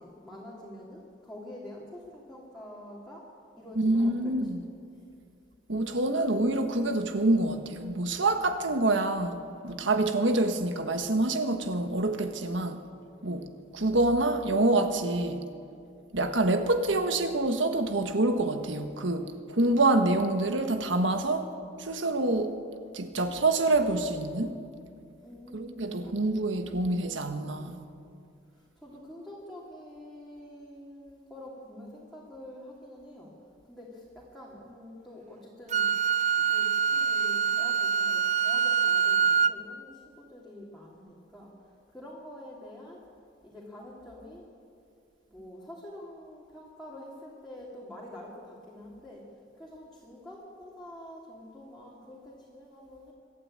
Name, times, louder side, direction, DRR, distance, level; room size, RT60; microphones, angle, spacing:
voice 1, 0.0-3.3 3.6-4.6 25.2-26.5 28.8-33.3 33.7-35.9 36.4-41.5 41.9-43.0 43.4-44.5 45.3-49.3 49.6-53.1, left 1 dB, ahead, 2.8 m, -46 dB
voice 2, 3.7-4.6 5.7-12.8 13.2-13.5 13.7-15.4 16.1-21.5 21.8-22.5 22.9-24.5 25.5-27.8, right 2 dB, 90° right, 1.5 m, -26 dB
Wind instrument woodwind instrument, 35.7-39.6, right 6 dB, 40° right, 0.5 m, -25 dB
25.0 x 12.0 x 8.9 m
head